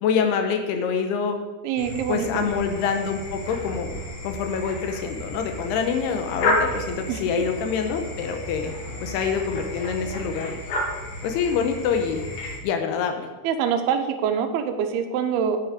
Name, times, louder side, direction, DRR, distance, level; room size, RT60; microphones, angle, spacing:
voice 1, 0.0-1.4 2.1-8.7 9.0-10.5 11.2-12.2 12.6-13.3, left 6 dB, 80° left, 6 dB, 2.8 m, -26 dB
voice 2, 1.6-2.5 7.1-7.2 13.4-15.6, right 7 dB, 75° right, 6 dB, 2.6 m, -25 dB
sound 1, 1.8-12.6, left 1 dB, 65° left, 3.4 m, -31 dB
10.0 x 8.1 x 4.9 m, 1.2 s
omnidirectional pair, 4.7 m